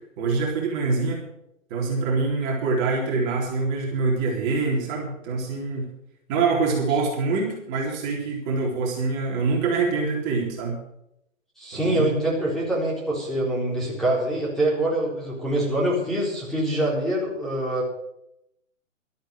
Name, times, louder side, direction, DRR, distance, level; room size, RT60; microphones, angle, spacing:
voice 1, 0.2-1.2 1.7-5.9 6.3-10.8 11.7-12.1, right 4 dB, 30° right, -1 dB, 3.8 m, -25 dB
voice 2, 11.6-17.9, right 1 dB, ahead, -5 dB, 3.9 m, -25 dB
13.0 x 11.5 x 6.5 m, 0.79 s
hypercardioid pair, 140°, 39 cm